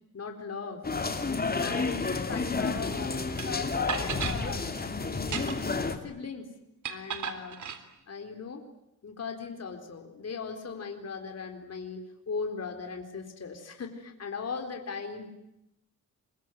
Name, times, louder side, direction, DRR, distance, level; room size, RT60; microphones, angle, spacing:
voice 1, 0.1-6.5 6.9-7.6 8.1-8.6 9.0-15.3, left 5 dB, 50° left, 5 dB, 4.2 m, -38 dB
sound 1, 0.8-6.0, left 3 dB, 30° left, 2.9 m, -31 dB
sound 2, 3.4-3.5 3.9-4.4 5.2-5.8 6.8-7.8, right 7 dB, 65° right, 3.4 m, -34 dB
26.5 x 23.5 x 9.4 m, 0.84 s
wide cardioid pair, 110°, 32 cm